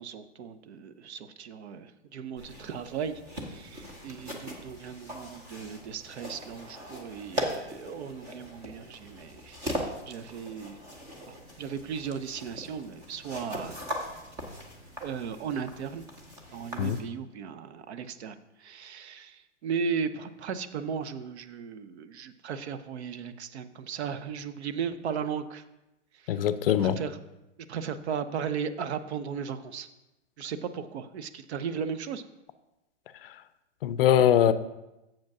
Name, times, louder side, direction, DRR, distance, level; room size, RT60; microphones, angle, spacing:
voice 1, 0.0-10.8 11.3-13.8 15.0-16.1 16.5-25.6 26.1-26.4 26.8-27.2 27.7-29.9 30.4-32.2, right 6 dB, 60° right, 12 dB, 0.7 m, -36 dB
sound 1, 2.4-17.0, equal, 10° right, 0.4 m, -40 dB
voice 2, 26.3-27.0 33.2-33.4 33.8-34.5, left 10 dB, 50° left, 14 dB, 0.5 m, -22 dB
7.4 x 5.1 x 5.9 m, 0.97 s
hypercardioid pair, 150°, 36 cm